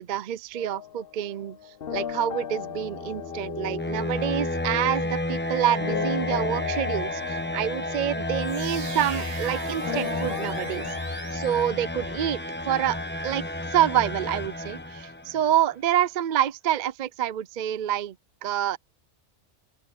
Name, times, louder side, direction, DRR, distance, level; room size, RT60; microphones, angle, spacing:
voice 1, 0.0-1.6 1.9-11.0 11.3-12.4 12.6-13.0 13.2-18.2 18.4-18.8, right 11 dB, 55° right, 0.5 m, -27 dB
sound 1, 0.5-11.0, left 8 dB, 55° left, 1.1 m, -37 dB
sound 2, 2.6-15.4, left 1 dB, 10° left, 0.9 m, -31 dB
sound 3, 8.4-12.2, right 5 dB, 35° right, 0.8 m, -41 dB
open air
omnidirectional pair, 1.2 m